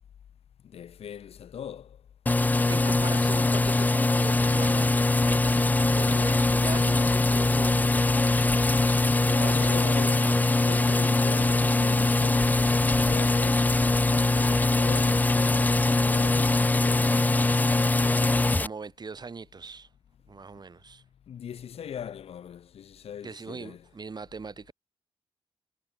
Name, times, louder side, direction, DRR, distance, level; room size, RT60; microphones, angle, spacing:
voice 1, 0.6-2.0 9.3-13.7 14.2-17.5 21.3-23.9, left 9 dB, 85° left, 7.7 m, -40 dB
sound 1, 2.3-18.7, left 2 dB, 15° left, 0.5 m, -22 dB
voice 2, 2.7-4.9 5.3-7.9 9.3-9.9 10.2-11.1 18.6-19.9 20.3-21.0 23.2-24.7, right 4 dB, 45° right, 4.1 m, -40 dB
cardioid pair, 75°, 10 cm